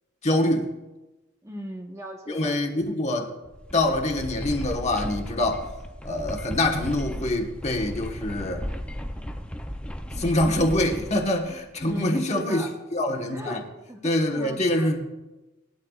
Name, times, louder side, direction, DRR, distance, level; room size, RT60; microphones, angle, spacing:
voice 1, 0.2-0.7 2.3-3.3 3.7-5.7 6.0-8.6 10.1-12.6 12.9-13.6 14.0-15.0, left 1 dB, 30° left, 3 dB, 1.3 m, -25 dB
voice 2, 1.4-2.8 11.8-12.7 13.3-13.6 13.9-15.0, right 1 dB, 15° right, 2 dB, 1.0 m, -38 dB
sound 1, 3.5-12.0, equal, 5° left, 0.5 m, -36 dB
19.0 x 12.0 x 2.4 m, 1.1 s
head